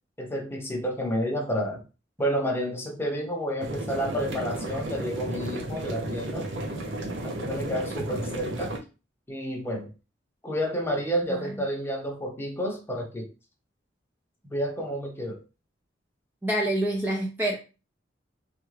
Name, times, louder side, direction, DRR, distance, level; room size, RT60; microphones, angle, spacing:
voice 1, 0.2-1.8 2.2-6.5 7.2-8.7 9.3-9.9 10.4-13.3 14.4-15.4, equal, 10° left, 0 dB, 0.8 m, -30 dB
sound 1, 3.6-8.8, right 1 dB, 70° right, 0.6 m, -33 dB
voice 2, 11.3-11.6 16.4-17.6, right 1 dB, 10° right, -2 dB, 0.5 m, -27 dB
3.3 x 2.4 x 3.2 m, 0.31 s
head